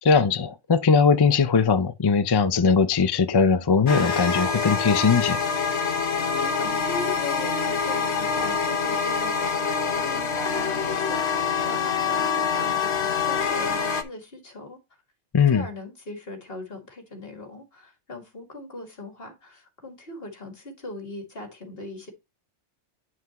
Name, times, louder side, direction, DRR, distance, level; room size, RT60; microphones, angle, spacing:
voice 1, 0.0-5.4 15.3-15.6, left 5 dB, 40° left, 0.3 m, -20 dB
sound 1, 3.9-14.0, left 6 dB, 70° left, 1.3 m, -25 dB
voice 2, 5.9-14.8 15.5-22.1, left 2 dB, 55° left, 2.4 m, -39 dB
9.2 x 5.9 x 3.0 m
omnidirectional pair, 1.2 m